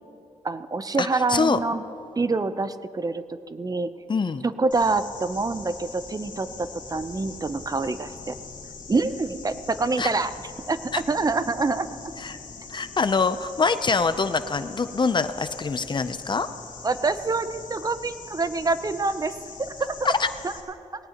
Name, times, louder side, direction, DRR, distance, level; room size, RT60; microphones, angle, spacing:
voice 1, 0.4-1.8 2.2-3.9 4.4-8.3 8.9-10.3 10.7-11.9 16.8-19.3 19.8-19.9 20.4-20.5, right 3 dB, 30° right, 12 dB, 0.6 m, -26 dB
voice 2, 1.0-1.6 4.1-4.4 10.0-10.1 10.9-11.0 12.2-12.4 12.7-16.5 20.0-20.3, left 4 dB, 35° left, 11 dB, 0.5 m, -24 dB
sound 1, 4.7-20.6, left 5 dB, 80° left, 1.7 m, -42 dB
19.5 x 18.0 x 2.9 m, 2.9 s
wide cardioid pair, 100°, 13 cm